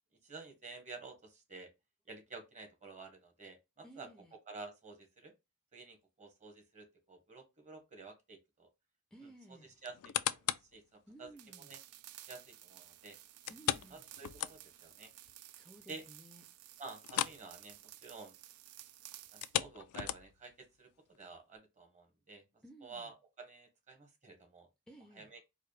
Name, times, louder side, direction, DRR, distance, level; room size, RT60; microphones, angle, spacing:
voice 1, 0.2-1.7 2.1-4.1 4.5-5.3 5.7-8.7 9.8-11.3 11.6-11.8 12.3-13.2 13.9-15.1 15.9-16.0 16.8-18.3 19.3-22.4 22.8-24.7 25.1-25.4, right 3 dB, 35° right, 1.2 m, -51 dB
voice 2, 3.8-4.4 9.1-9.7 11.1-11.8 13.5-14.0 15.5-16.4 22.6-23.1 24.9-25.3, right 1 dB, 5° left, 0.5 m, -56 dB
sound 1, 9.8-10.8 11.3-11.4 13.5-14.9 15.3-15.4 15.8-15.9 17.0-17.5 17.7-18.0 19.3-20.5 21.1-21.2, left 12 dB, 80° left, 0.3 m, -37 dB
sound 2, 11.4-19.6, right 13 dB, 75° right, 0.4 m, -55 dB
4.7 x 2.2 x 3.2 m
head